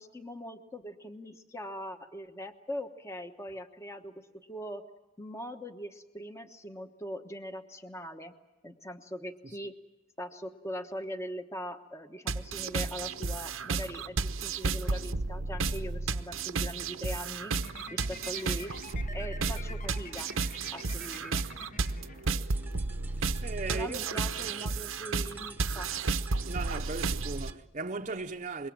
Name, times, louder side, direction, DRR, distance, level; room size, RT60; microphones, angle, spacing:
voice 1, 0.0-4.8 5.2-8.3 8.6-9.8 10.2-17.5 17.9-18.7 19.1-20.3 20.7-21.4 23.7-25.9, equal, 15° left, 1.1 m, -41 dB
sound 1, 12.3-27.5, right 4 dB, 85° right, 0.9 m, -33 dB
sound 2, 17.5-22.7, left 4 dB, 40° left, 1.1 m, -48 dB
sound 3, 22.4-27.6, right 5 dB, 10° right, 1.0 m, -50 dB
voice 2, 23.2-24.1 26.5-28.7, right 3 dB, 35° right, 0.8 m, -37 dB
26.0 x 22.5 x 7.5 m
head